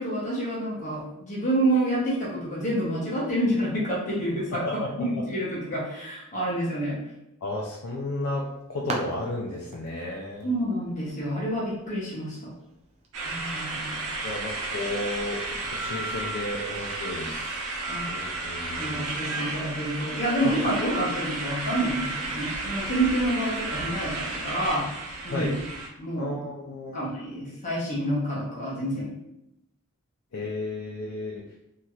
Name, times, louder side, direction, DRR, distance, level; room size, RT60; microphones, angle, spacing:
voice 1, 0.0-7.0 10.4-12.5 13.2-14.1 17.9-18.1 18.7-24.9 25.2-25.6 26.0-26.3 26.9-29.2, right 1 dB, 35° left, -6 dB, 0.8 m, -28 dB
voice 2, 7.4-8.4 8.7-10.5 14.2-15.4 15.7-17.5 18.1-19.0 25.3-25.5 26.2-27.0 30.3-31.4, left 2 dB, 85° left, -2 dB, 0.5 m, -33 dB
sound 1, 8.0-13.1, right 2 dB, 30° right, 0.4 m, -41 dB
sound 2, 13.1-25.9, right 2 dB, 70° right, 0.6 m, -33 dB
2.9 x 2.8 x 2.4 m, 0.84 s
head